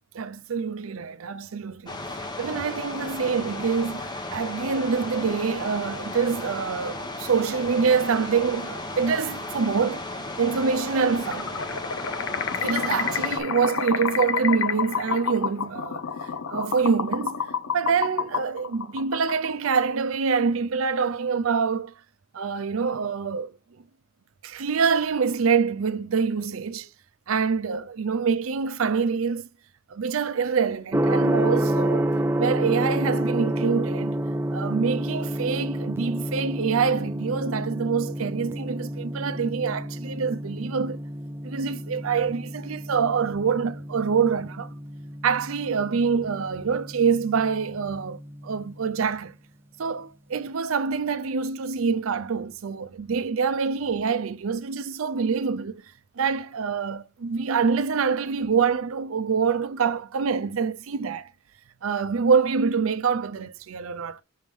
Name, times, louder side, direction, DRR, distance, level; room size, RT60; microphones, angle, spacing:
voice 1, 0.1-2.0 2.4-10.0 10.4-11.5 12.6-17.5 17.7-21.9 22.3-23.5 24.4-26.9 27.3-29.5 29.9-32.1 32.4-34.2 34.5-41.0 41.4-44.7 45.2-49.3 49.8-55.8 56.2-61.3 61.8-64.2, right 5 dB, 85° right, 0.5 m, -25 dB
sound 1, 1.9-13.4, left 2 dB, 20° left, 0.9 m, -35 dB
sound 2, 11.2-19.7, left 6 dB, 85° left, 0.7 m, -29 dB
Gong, 30.9-48.8, right 1 dB, 10° right, 0.4 m, -29 dB
6.4 x 3.2 x 5.2 m
head